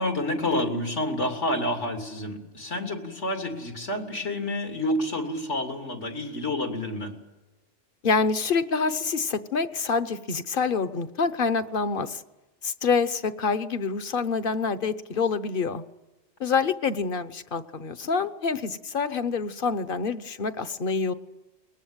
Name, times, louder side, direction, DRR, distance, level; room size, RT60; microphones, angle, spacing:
voice 1, 0.0-7.1, left 1 dB, 90° left, 3 dB, 3.3 m, -29 dB
voice 2, 8.0-12.2 12.6-15.8 16.4-21.1, left 5 dB, 50° left, 13 dB, 1.1 m, -26 dB
22.5 x 20.0 x 9.0 m, 1.1 s
omnidirectional pair, 1.2 m